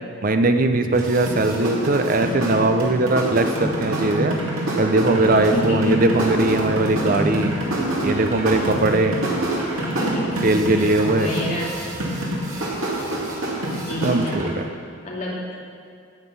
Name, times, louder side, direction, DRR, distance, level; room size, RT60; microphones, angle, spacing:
voice 1, 0.2-4.4 4.8-7.5 8.0-9.2 10.4-11.3 14.0-14.6, right 2 dB, 40° right, 7 dB, 0.6 m, -20 dB
sound 1, 0.9-14.5, right 1 dB, 85° right, 2.4 m, -26 dB
voice 2, 5.2-6.0 8.5-8.8 9.7-10.5 10.7-11.7 13.8-14.4 15.0-15.4, equal, 35° left, -5 dB, 2.7 m, -29 dB
12.5 x 8.2 x 5.5 m, 2.2 s
head